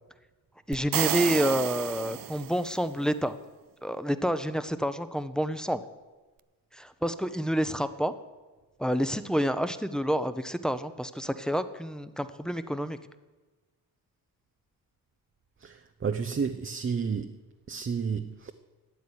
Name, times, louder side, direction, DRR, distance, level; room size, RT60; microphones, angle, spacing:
voice 1, 0.7-3.4 3.8-5.8 6.7-8.1 8.8-13.0, equal, ahead, 11 dB, 0.9 m, -28 dB
sound 1, 0.7-2.8, right 13 dB, 60° right, 0.5 m, -31 dB
voice 2, 15.6-17.3 17.7-18.5, right 6 dB, 30° right, 7 dB, 0.8 m, -31 dB
12.5 x 8.3 x 9.9 m, 1.2 s
cardioid pair, 75°, 39 cm